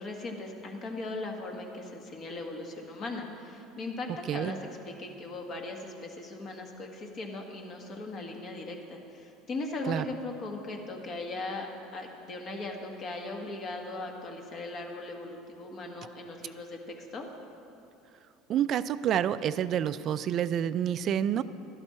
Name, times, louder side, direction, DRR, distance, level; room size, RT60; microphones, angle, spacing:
voice 1, 0.0-4.6 4.9-17.3, left 2 dB, 45° left, 2 dB, 1.6 m, -38 dB
voice 2, 18.5-21.4, right 10 dB, 50° right, 14 dB, 0.4 m, -28 dB
12.0 x 11.5 x 4.3 m, 2.9 s
supercardioid pair, 100°, 0 cm